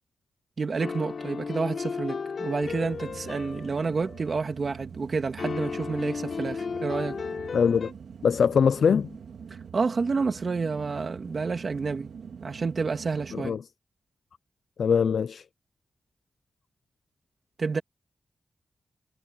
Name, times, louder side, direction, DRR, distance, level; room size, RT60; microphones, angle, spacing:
voice 1, 0.6-7.2 9.7-12.1 12.4-13.6 17.6-17.8, right 4 dB, 50° right, 2.7 m, -29 dB
sound 1, 0.8-4.5 5.4-7.9, left 5 dB, 65° left, 3.9 m, -34 dB
sound 2, 2.6-13.5, right 6 dB, 85° right, 2.2 m, -44 dB
voice 2, 7.5-7.9 8.2-9.1 13.3-13.6 14.8-15.4, left 6 dB, 80° left, 0.4 m, -22 dB
wide cardioid pair, 95°, 0 cm